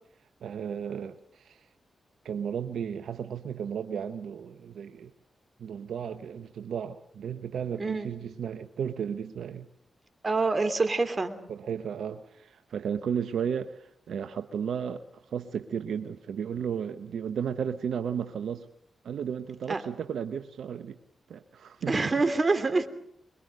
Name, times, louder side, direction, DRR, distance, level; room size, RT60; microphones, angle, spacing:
voice 1, 0.4-1.7 2.2-5.1 5.6-9.7 11.5-18.7 19.0-21.0 21.3-22.0, right 7 dB, 80° right, 10 dB, 0.9 m, -34 dB
voice 2, 7.8-8.1 10.2-11.4 19.7-19.8 21.9-22.9, right 3 dB, 40° right, 10 dB, 3.0 m, -26 dB
25.5 x 22.5 x 6.6 m, 0.68 s
supercardioid pair, 40°, 0 cm